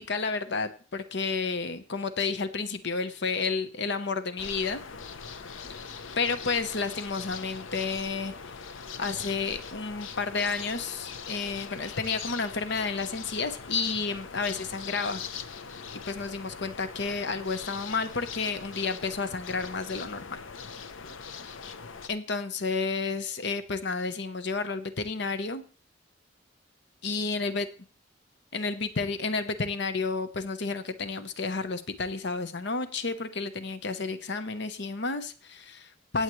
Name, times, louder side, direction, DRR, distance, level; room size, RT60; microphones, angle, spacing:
voice 1, 0.0-4.8 6.2-8.6 9.0-15.2 16.1-20.4 22.1-25.6 27.0-27.7 28.5-36.2, left 4 dB, 65° left, 10 dB, 0.9 m, -31 dB
sound 1, 4.4-22.1, left 6 dB, 90° left, 0.8 m, -41 dB
17.5 x 8.2 x 3.2 m, 0.39 s
head